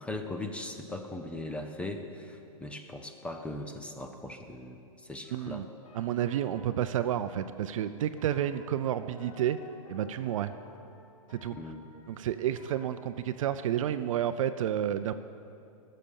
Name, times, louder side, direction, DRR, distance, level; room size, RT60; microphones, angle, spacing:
voice 1, 0.0-5.6 11.5-11.9, left 2 dB, 5° left, 5 dB, 0.5 m, -39 dB
sound 1, 5.2-12.9, left 3 dB, 60° left, 1.7 m, -55 dB
voice 2, 5.3-5.6 5.9-9.6 9.9-10.5 11.3-11.6 12.1-15.1, right 10 dB, 65° right, 11 dB, 0.5 m, -30 dB
13.5 x 6.6 x 7.1 m, 2.6 s
hypercardioid pair, 145°, 18 cm